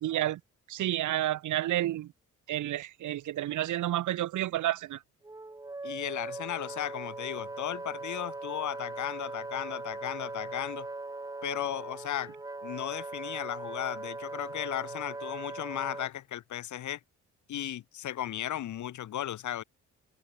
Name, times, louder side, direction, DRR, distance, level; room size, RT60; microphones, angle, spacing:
voice 1, 0.0-0.4 0.7-2.1 2.5-5.0, right 13 dB, 75° right, 2.0 m, -30 dB
Wind instrument woodwind instrument, 5.2-16.1, right 2 dB, 10° right, 0.9 m, -40 dB
voice 2, 5.8-10.9 11.4-12.3 12.6-17.0 17.5-19.6, left 12 dB, 70° left, 4.8 m, -35 dB
open air
cardioid pair, 90°, 30 cm